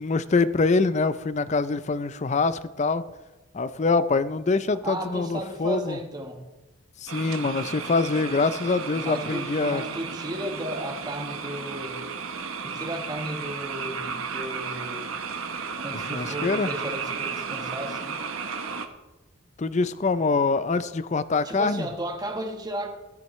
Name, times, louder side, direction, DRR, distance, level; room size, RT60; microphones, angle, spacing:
voice 1, 0.0-3.0 3.5-6.0 7.0-9.8 15.9-16.7 19.6-21.9, left 3 dB, 35° left, 14 dB, 0.5 m, -24 dB
voice 2, 4.8-6.5 9.0-12.0 12.6-15.1 15.8-18.2 21.4-22.9, right 1 dB, 20° right, 4 dB, 1.3 m, -34 dB
sound 1, 7.1-18.9, right 5 dB, 80° right, 1.0 m, -34 dB
14.0 x 13.0 x 3.2 m, 1.1 s
head